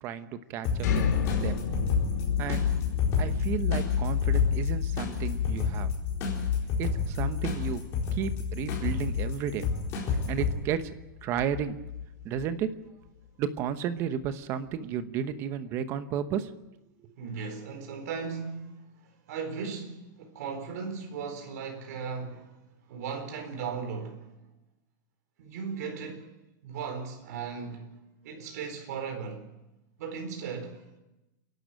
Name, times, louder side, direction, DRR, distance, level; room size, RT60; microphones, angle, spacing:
voice 1, 0.0-1.0 1.4-1.6 2.4-2.7 3.2-5.9 6.8-7.8 8.1-9.8 10.3-10.9 11.2-11.8 12.2-12.7 13.4-16.5, right 8 dB, 25° right, 1.0 m, -32 dB
sound 1, 0.6-10.5, left 4 dB, 25° left, 4.4 m, -32 dB
sound 2, 0.8-12.6, left 8 dB, 55° left, 3.5 m, -30 dB
voice 2, 17.2-18.7 19.3-22.6 22.9-24.3 25.4-26.3 26.6-27.9 28.2-29.5 30.0-30.8, right 5 dB, 50° right, 4.4 m, -37 dB
29.5 x 12.0 x 9.2 m
supercardioid pair, 175°, 11 cm